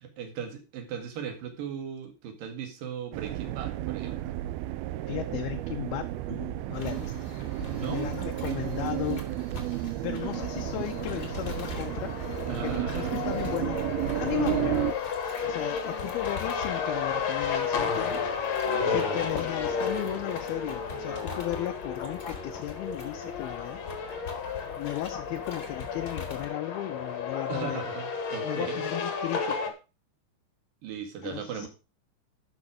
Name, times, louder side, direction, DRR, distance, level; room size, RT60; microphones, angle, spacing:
voice 1, 0.0-4.4 7.7-8.1 12.5-13.1 18.6-19.4 27.5-28.8 30.8-31.7, right 7 dB, 55° right, 5 dB, 3.2 m, -38 dB
sound 1, 3.1-14.9, right 16 dB, 85° right, 2.1 m, -32 dB
voice 2, 5.1-7.2 7.8-9.2 10.0-12.1 12.6-13.8 14.2-14.9 15.4-18.2 18.9-23.8 24.8-27.8 28.4-29.6 31.2-31.7, left 14 dB, 75° left, 5 dB, 2.4 m, -35 dB
sound 2, 6.7-26.5, left 6 dB, 35° left, 1.5 m, -45 dB
sound 3, 10.2-29.7, left 6 dB, 55° left, 2.1 m, -33 dB
12.0 x 6.3 x 4.9 m, 0.30 s
omnidirectional pair, 5.1 m